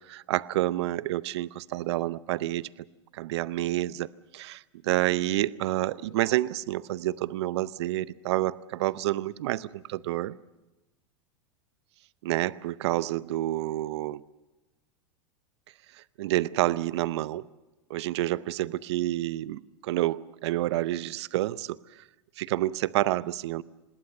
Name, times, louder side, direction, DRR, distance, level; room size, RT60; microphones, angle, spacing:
voice 1, 0.1-2.7 3.1-4.1 4.3-10.4 12.2-14.2 16.2-17.5 17.9-21.8 22.4-23.6, right 15 dB, 65° right, 19 dB, 0.7 m, -28 dB
26.5 x 20.5 x 6.6 m, 1.1 s
hypercardioid pair, 95°, 15 cm